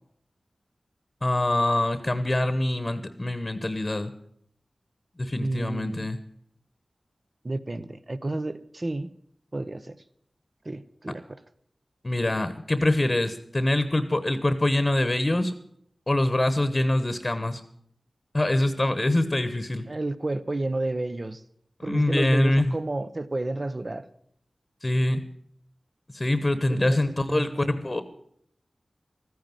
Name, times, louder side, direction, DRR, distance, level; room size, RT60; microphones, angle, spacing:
voice 1, 1.2-4.1 5.2-6.2 12.0-15.5 16.1-17.6 18.3-19.8 21.8-22.8 24.8-25.2 26.1-28.0, left 1 dB, 35° left, 1.1 m, -24 dB
voice 2, 5.4-6.1 7.4-9.1 9.5-10.0 10.6-11.2 19.9-21.4 21.8-24.1 26.7-27.5, right 2 dB, 45° right, 0.8 m, -31 dB
13.5 x 9.5 x 7.6 m
cardioid pair, 40°, 0 cm